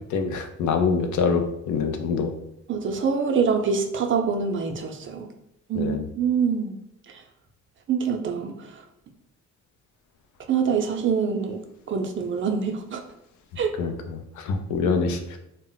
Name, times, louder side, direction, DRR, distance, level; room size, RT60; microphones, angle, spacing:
voice 1, 0.1-2.3 5.7-6.1 13.5-15.4, left 5 dB, 75° left, 6 dB, 0.5 m, -25 dB
voice 2, 2.7-5.3 5.7-6.7 7.1-7.2 7.9-8.8 10.5-11.6 11.9-13.0 13.6-13.7, right 6 dB, 45° right, 5 dB, 0.4 m, -25 dB
2.1 x 2.0 x 3.7 m, 0.82 s
cardioid pair, 90°, 30 cm